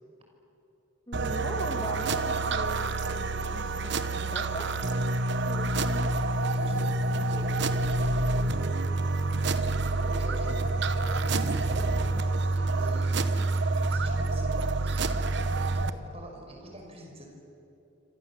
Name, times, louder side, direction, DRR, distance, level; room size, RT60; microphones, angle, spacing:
voice 1, 1.1-4.7 5.5-6.1, left 1 dB, 25° left, 2 dB, 2.6 m, -40 dB
sound 1, 1.1-15.9, right 2 dB, 60° right, 1.1 m, -27 dB
voice 2, 6.5-8.7 9.3-13.3 13.9-15.3 15.7-17.3, right 1 dB, 30° right, 1 dB, 5.6 m, -45 dB
27.5 x 26.0 x 7.5 m, 2.8 s
head